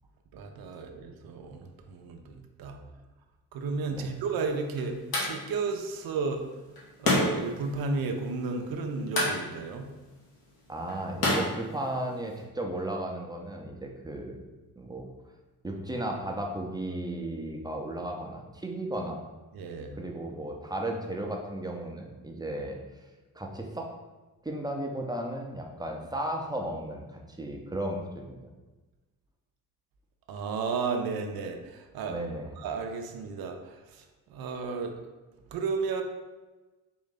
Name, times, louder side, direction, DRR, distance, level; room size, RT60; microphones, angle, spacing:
voice 1, 0.3-2.8 3.5-6.4 7.0-9.9 19.5-20.0 30.3-32.2 32.6-34.0 34.3-35.0 35.5-36.0, right 4 dB, 60° right, 5 dB, 0.6 m, -33 dB
sound 1, 3.9-12.4, left 2 dB, 60° left, 1.4 m, -33 dB
voice 2, 10.7-14.5 14.8-15.1 15.6-19.2 19.9-22.8 23.3-23.9 24.4-28.5 32.1-32.7, right 1 dB, 10° right, 1 dB, 0.7 m, -35 dB
3.7 x 2.6 x 3.8 m, 1.2 s
supercardioid pair, 50°, 40 cm